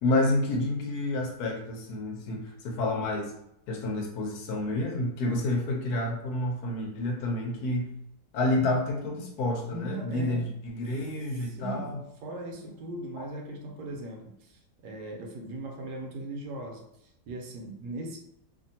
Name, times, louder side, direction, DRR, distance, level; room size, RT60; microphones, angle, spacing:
voice 1, 0.0-3.3 3.7-7.9 8.3-12.0, left 2 dB, 70° left, 1 dB, 1.1 m, -29 dB
voice 2, 9.7-10.5 11.4-11.9 12.2-18.2, right 2 dB, 80° right, 1 dB, 1.3 m, -39 dB
2.8 x 2.6 x 2.7 m, 0.79 s
omnidirectional pair, 1.8 m